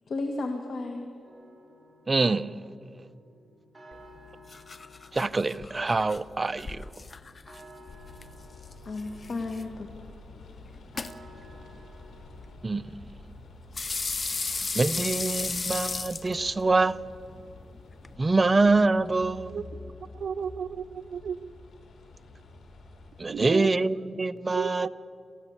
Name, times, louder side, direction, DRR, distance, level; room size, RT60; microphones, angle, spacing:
voice 1, 0.1-1.1 8.9-10.1, left 2 dB, 60° left, 3 dB, 2.0 m, -33 dB
sound 1, 1.2-12.5, equal, 5° right, 5.6 m, -54 dB
voice 2, 2.1-2.6 5.1-6.8 12.6-12.9 14.7-17.0 18.2-19.5 23.2-24.9, right 3 dB, 30° right, 12 dB, 0.7 m, -25 dB
sound 2, 3.9-18.1, left 4 dB, 40° left, 0.9 m, -37 dB
sound 3, 7.8-23.3, left 2 dB, 85° left, 3.5 m, -49 dB
voice 3, 20.1-21.4 23.3-23.7 24.5-24.9, right 7 dB, 70° right, 8 dB, 0.7 m, -32 dB
27.0 x 15.5 x 8.2 m, 2.5 s
cardioid pair, 95°, 0 cm